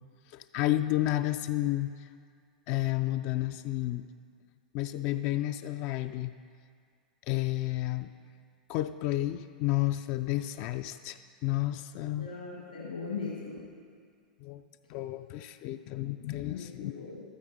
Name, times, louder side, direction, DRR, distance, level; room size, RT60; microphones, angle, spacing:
voice 1, 0.3-2.1 2.7-4.1 4.7-6.3 7.3-8.1 8.7-12.3 14.4-14.6 14.9-17.1, left 15 dB, 40° left, 9 dB, 0.3 m, -31 dB
voice 2, 12.2-13.7 16.5-17.2, left 4 dB, 70° left, -3 dB, 1.5 m, -39 dB
15.0 x 12.5 x 2.6 m, 2.1 s
figure-of-eight pair, 95°, 5 cm